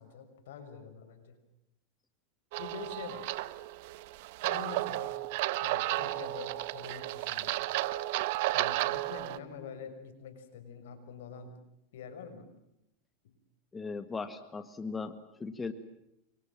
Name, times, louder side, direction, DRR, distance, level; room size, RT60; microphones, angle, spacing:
voice 1, 0.0-1.4 2.6-3.2 4.4-5.2 5.6-7.6 8.5-11.6 11.9-12.4, left 6 dB, 85° left, 7 dB, 6.4 m, -45 dB
sound 1, 2.5-9.4, right 18 dB, 65° right, 1.2 m, -33 dB
voice 2, 13.7-15.7, left 4 dB, 15° left, 10 dB, 1.7 m, -38 dB
29.5 x 24.0 x 7.5 m, 0.84 s
supercardioid pair, 130°, 0 cm